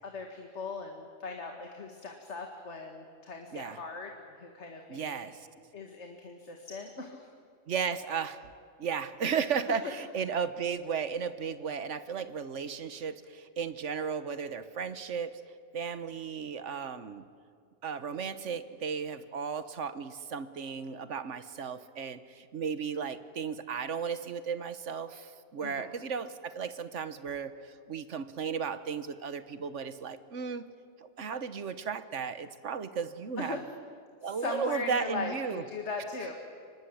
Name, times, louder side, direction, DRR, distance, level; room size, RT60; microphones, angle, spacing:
voice 1, 0.0-5.3 5.7-7.3 25.6-25.9 33.4-33.6 34.2-36.3, left 3 dB, 70° left, 3 dB, 2.1 m, -39 dB
voice 2, 4.9-5.5 7.7-8.5 8.8-15.4 15.7-17.3 17.8-30.6 31.0-33.6 34.2-35.6, right 6 dB, 80° right, 12 dB, 1.4 m, -35 dB
24.5 x 19.5 x 8.7 m, 2.3 s
omnidirectional pair, 1.2 m